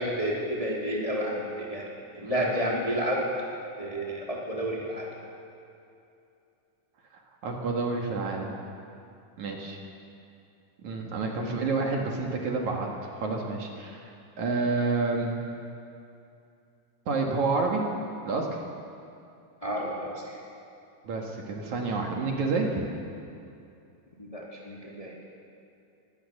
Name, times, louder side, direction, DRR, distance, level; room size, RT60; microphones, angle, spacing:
voice 1, 0.0-1.8 2.1-3.2 3.8-5.1 11.4-11.6 19.6-20.1 24.2-25.1, equal, 10° left, -3 dB, 2.6 m, -30 dB
voice 2, 2.2-2.5 7.4-8.5 9.4-9.8 10.8-14.0 14.4-15.3 17.1-17.8 18.2-18.5 21.0-22.7, right 3 dB, 60° right, 1 dB, 3.1 m, -29 dB
22.5 x 17.0 x 6.8 m, 2.6 s
omnidirectional pair, 3.9 m